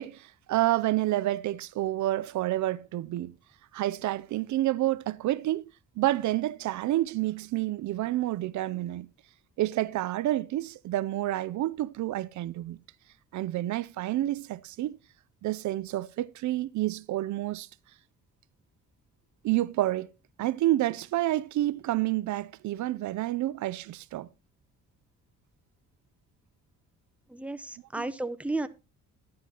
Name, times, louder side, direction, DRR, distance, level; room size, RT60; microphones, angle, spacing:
voice 1, 0.0-3.4 3.7-5.6 6.0-9.1 9.6-12.8 13.3-15.0 15.4-17.7 19.4-20.1 20.4-24.3 28.0-28.1, right 15 dB, 70° right, 0.5 m, -29 dB
voice 2, 27.3-28.7, right 2 dB, 5° right, 0.9 m, -33 dB
11.0 x 10.5 x 2.9 m
cardioid pair, 90°, 30 cm